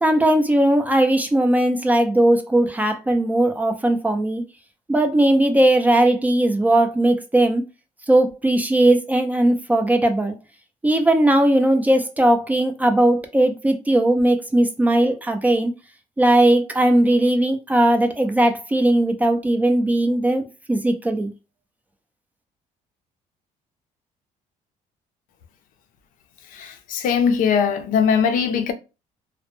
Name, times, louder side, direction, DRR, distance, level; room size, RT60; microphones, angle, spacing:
voice 1, 0.0-4.4 4.9-7.6 8.1-10.3 10.8-15.7 16.2-21.3, right 1 dB, 10° right, 0.3 m, -18 dB
voice 2, 26.5-28.7, left 6 dB, 65° left, 0.5 m, -20 dB
2.1 x 2.1 x 2.9 m
cardioid pair, 135°, 15 cm